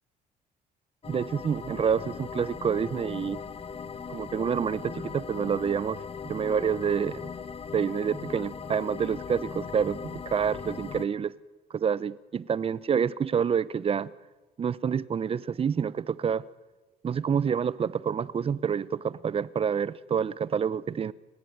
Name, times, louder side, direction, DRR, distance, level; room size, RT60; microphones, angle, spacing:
sound 1, 1.0-11.1, left 6 dB, 35° left, 1.5 m, -39 dB
voice 1, 1.1-3.4 4.1-7.3 7.7-11.3 11.7-14.1 14.6-16.5 17.0-21.1, right 7 dB, 35° right, 0.9 m, -28 dB
29.5 x 21.0 x 9.5 m
cardioid pair, 110°, 17 cm